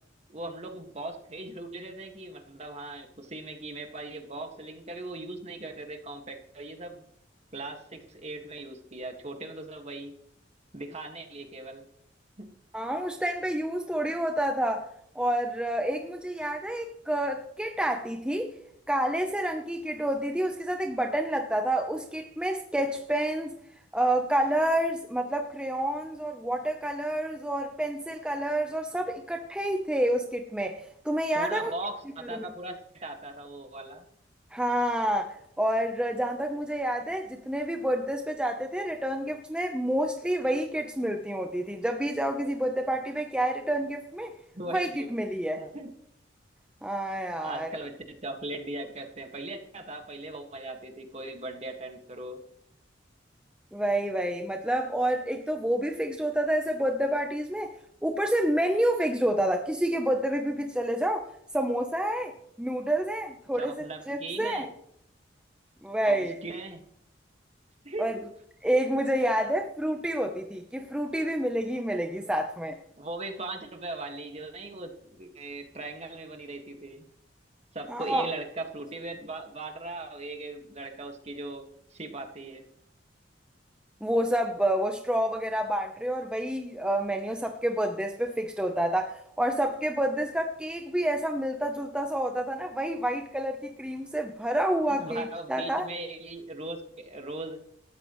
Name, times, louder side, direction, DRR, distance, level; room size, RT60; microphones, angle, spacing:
voice 1, 0.3-7.0 7.5-10.2 10.7-11.9 12.4-12.5 31.3-34.1 44.5-45.9 47.4-52.4 63.5-64.7 66.1-66.8 67.8-68.2 73.0-77.1 77.7-82.7 94.9-97.6, right 2 dB, 35° right, 4 dB, 1.9 m, -39 dB
voice 2, 12.7-14.9 15.1-18.5 18.9-23.6 23.9-31.7 32.3-32.5 34.5-44.3 44.7-45.6 46.8-47.7 53.7-57.7 58.0-61.3 61.5-62.3 62.6-64.7 65.8-66.3 68.0-68.1 68.6-72.8 77.9-78.3 84.0-95.9, right 1 dB, 5° right, 4 dB, 0.8 m, -28 dB
18.5 x 13.5 x 3.2 m, 0.71 s
head